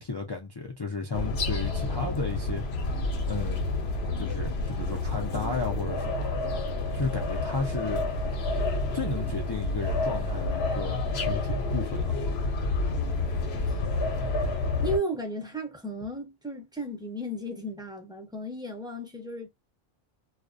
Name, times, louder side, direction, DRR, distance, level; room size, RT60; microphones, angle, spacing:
voice 1, 0.0-3.7 4.2-6.4 6.9-8.0 8.9-12.2, left 4 dB, 40° left, 0.4 m, -34 dB
sound 1, 1.1-15.0, left 2 dB, 80° left, 0.9 m, -29 dB
voice 2, 14.8-19.5, equal, 5° right, 0.6 m, -34 dB
2.4 x 2.1 x 2.4 m
omnidirectional pair, 1.1 m